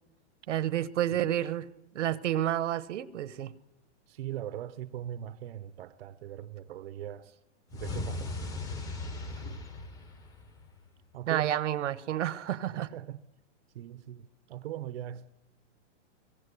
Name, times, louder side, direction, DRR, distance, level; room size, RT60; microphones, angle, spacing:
voice 1, 0.5-1.7 1.9-3.5 11.3-12.9, right 12 dB, 80° right, 1.1 m, -30 dB
voice 2, 4.1-7.3 7.7-8.4 9.3-9.7 11.1-11.5 12.7-13.2 13.7-15.3, right 12 dB, 55° right, 0.7 m, -40 dB
sound 1, 7.7-10.9, left 3 dB, 10° left, 0.7 m, -38 dB
24.0 x 17.0 x 8.2 m
supercardioid pair, 175°, 36 cm